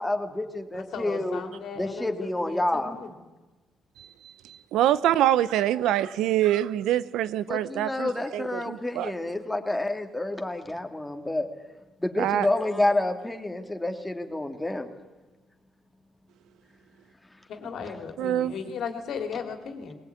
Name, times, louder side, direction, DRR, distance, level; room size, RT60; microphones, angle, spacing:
voice 1, 0.0-1.4 1.8-3.0 7.5-11.5 12.0-14.9, left 1 dB, 10° left, 5 dB, 2.4 m, -29 dB
voice 2, 0.7-3.1 17.5-19.9, left 6 dB, 70° left, 6 dB, 3.1 m, -36 dB
voice 3, 4.4-9.1 12.2-12.5 18.2-18.5, right 12 dB, 90° right, 16 dB, 0.8 m, -25 dB
20.5 x 19.0 x 9.5 m, 1.2 s
cardioid pair, 90°, 0 cm